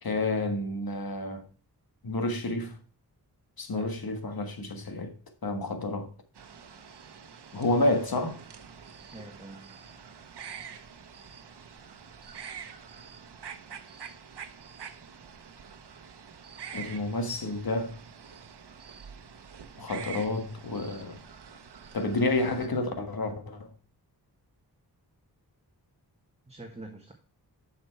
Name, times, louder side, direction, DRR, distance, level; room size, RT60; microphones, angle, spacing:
voice 1, 0.0-1.4 2.0-2.8 3.6-5.1 5.4-6.1 7.5-8.4 16.7-18.0 19.8-21.2 21.9-23.7, left 2 dB, 65° left, 1.6 m, -29 dB
voice 2, 3.7-4.0 9.1-9.8 26.4-27.1, right 2 dB, 15° right, 1.4 m, -45 dB
sound 1, 6.4-22.7, right 7 dB, 80° right, 1.0 m, -46 dB
7.7 x 5.9 x 4.5 m
wide cardioid pair, 75°, 40 cm